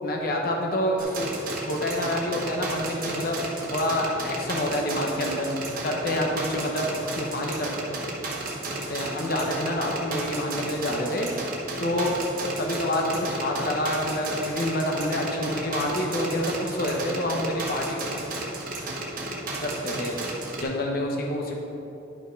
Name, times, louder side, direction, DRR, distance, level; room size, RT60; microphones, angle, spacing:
voice 1, 0.0-1.3 1.7-5.5 5.8-7.7 8.9-11.3 11.8-12.1 12.6-18.0 19.6-20.2 20.6-21.6, left 1 dB, 50° left, 0 dB, 0.9 m, -27 dB
sound 1, 1.0-20.6, right 2 dB, 50° right, 1.2 m, -33 dB
10.5 x 5.8 x 4.5 m, 2.9 s
head